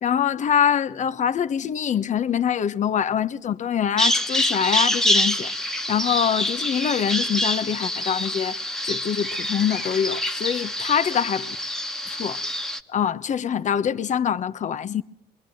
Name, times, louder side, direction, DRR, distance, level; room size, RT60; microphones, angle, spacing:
voice 1, 0.0-11.6 12.1-12.4 12.9-15.0, left 8 dB, 45° left, 1.2 m, -24 dB
Bird vocalization bird call bird song, 4.0-12.8, left 1 dB, 5° left, 1.6 m, -26 dB
23.5 x 23.0 x 7.9 m
cardioid pair, 110°, 17 cm